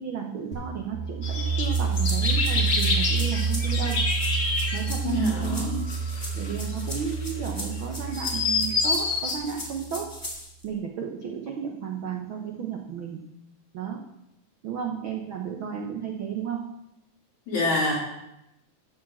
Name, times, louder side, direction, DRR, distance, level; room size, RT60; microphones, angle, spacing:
voice 1, 0.0-4.0 4.7-5.8 6.3-10.1 10.6-13.2 13.7-14.0 14.6-16.7, right 7 dB, 80° right, 1 dB, 1.1 m, -33 dB
sound 1, 0.5-10.1, right 5 dB, 45° right, 0.8 m, -29 dB
sound 2, 1.2-9.4, left 3 dB, 45° left, 1.3 m, -28 dB
sound 3, 1.6-10.7, left 1 dB, 5° left, 2.4 m, -40 dB
voice 2, 5.0-5.8 17.5-18.0, left 2 dB, 65° left, -5 dB, 4.8 m, -26 dB
13.0 x 4.9 x 7.5 m, 0.85 s
omnidirectional pair, 3.7 m